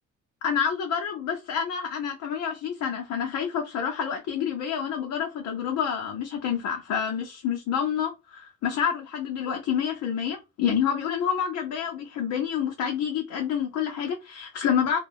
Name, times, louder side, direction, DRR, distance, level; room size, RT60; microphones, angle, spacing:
voice 1, 0.4-15.0, left 8 dB, 75° left, 0.7 m, -28 dB
2.3 x 2.2 x 3.3 m
cardioid pair, 90°, 30 cm